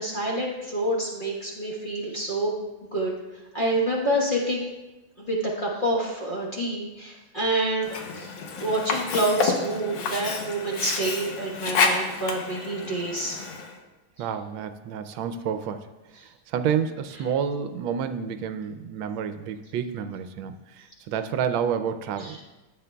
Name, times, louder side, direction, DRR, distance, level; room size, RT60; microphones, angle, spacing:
voice 1, 0.0-2.6 2.9-3.1 3.5-4.7 5.2-8.3 8.6-13.4 22.2-22.4, right 1 dB, 30° left, -4 dB, 1.2 m, -27 dB
Sink (filling or washing), 7.8-13.8, left 4 dB, 80° left, 1.7 m, -29 dB
voice 2, 14.2-15.9 16.1-22.4, right 7 dB, 80° right, 10 dB, 1.3 m, -29 dB
13.5 x 7.8 x 2.3 m, 1.1 s
omnidirectional pair, 2.2 m